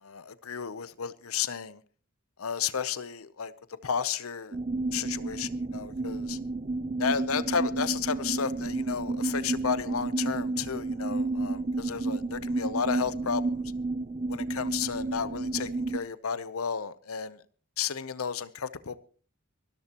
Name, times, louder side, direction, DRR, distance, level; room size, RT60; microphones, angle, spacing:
voice 1, 0.0-1.8 2.4-3.5 3.8-4.6 4.9-6.4 7.0-13.6 14.3-17.4 17.8-19.0, left 7 dB, 80° left, 0.7 m, -32 dB
sound 1, 4.5-16.0, right 2 dB, 30° right, 0.6 m, -31 dB
23.5 x 13.5 x 3.0 m
head